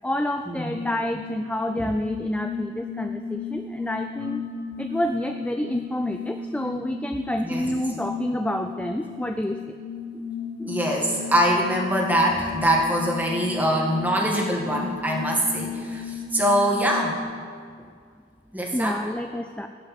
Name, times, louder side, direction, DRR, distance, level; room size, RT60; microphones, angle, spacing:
voice 1, 0.0-4.4 4.8-9.6 10.6-10.8 18.7-19.7, left 1 dB, 5° left, 6 dB, 0.3 m, -28 dB
sound 1, 0.7-17.2, left 6 dB, 70° left, 1.7 m, -35 dB
voice 2, 10.7-17.2 18.5-19.0, equal, 10° right, -1 dB, 1.5 m, -23 dB
17.5 x 8.0 x 4.2 m, 2.1 s
head